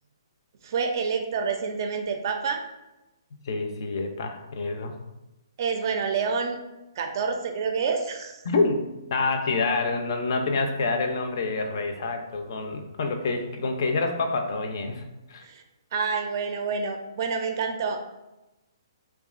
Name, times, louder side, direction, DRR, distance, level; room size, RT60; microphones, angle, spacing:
voice 1, 0.6-2.6 5.6-6.6 7.0-8.4 15.4-15.6 15.9-18.0, right 5 dB, 50° right, 5 dB, 0.4 m, -28 dB
voice 2, 3.3-5.0 8.5-8.8 9.1-15.5, left 3 dB, 55° left, 6 dB, 0.4 m, -27 dB
2.7 x 2.2 x 2.4 m, 0.99 s
hypercardioid pair, 135°, 2 cm